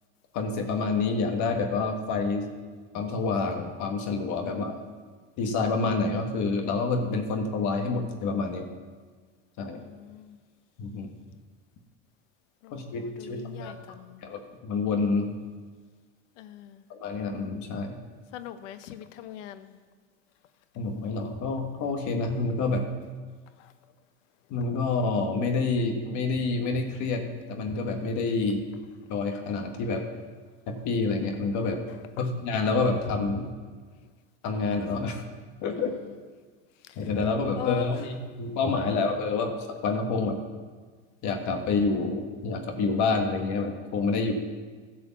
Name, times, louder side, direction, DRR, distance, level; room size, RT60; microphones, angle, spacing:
voice 1, 0.3-2.5 2.9-4.8 5.4-8.7 9.6-9.8 10.8-11.1 12.7-13.7 14.2-15.3 16.9-17.9 20.7-22.9 24.5-27.2 27.5-28.7 29.1-30.0 30.7-31.8 32.2-33.5 34.4-35.2 35.6-35.9 37.0-39.5 39.8-40.4 41.2-44.3, left 4 dB, 50° left, 4 dB, 1.5 m, -28 dB
voice 2, 4.4-4.8 9.7-10.4 12.6-14.2 16.4-16.8 18.3-19.7 23.6-23.7 32.2-32.3 35.7-36.2 36.8-37.1 37.6-37.9, left 11 dB, 80° left, 12 dB, 0.9 m, -41 dB
11.5 x 5.0 x 7.3 m, 1.5 s
supercardioid pair, 120°, 36 cm